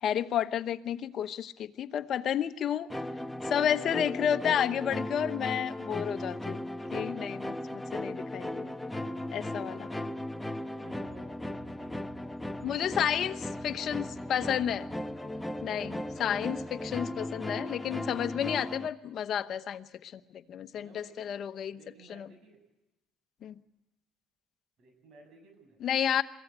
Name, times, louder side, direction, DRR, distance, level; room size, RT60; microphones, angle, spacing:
voice 1, 0.0-2.9 3.5-6.6 6.9-8.5 9.3-9.8 12.6-13.4 13.6-14.9 15.6-21.8 22.1-22.3 23.4-23.6 25.8-26.2, left 9 dB, 55° left, 9 dB, 1.0 m, -31 dB
sound 1, 2.9-18.9, left 1 dB, 5° left, 0.9 m, -37 dB
voice 2, 8.4-10.2 10.7-11.9 12.6-13.9 20.7-22.6 24.8-25.8, right 2 dB, 60° right, 5 dB, 6.5 m, -56 dB
23.0 x 15.5 x 8.1 m, 0.96 s
supercardioid pair, 90°, 0 cm